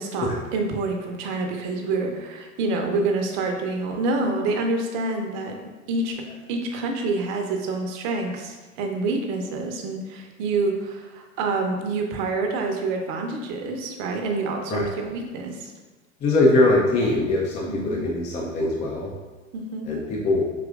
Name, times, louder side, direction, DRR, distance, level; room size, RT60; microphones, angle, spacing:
voice 1, 0.0-5.5 5.9-6.2 6.5-15.7 17.7-18.0 19.5-19.9, right 3 dB, 45° right, 3 dB, 0.7 m, -27 dB
voice 2, 16.2-19.1 19.8-20.5, left 2 dB, 20° left, -2 dB, 0.4 m, -22 dB
5.0 x 3.1 x 2.4 m, 1.3 s
figure-of-eight pair, 80°, 39 cm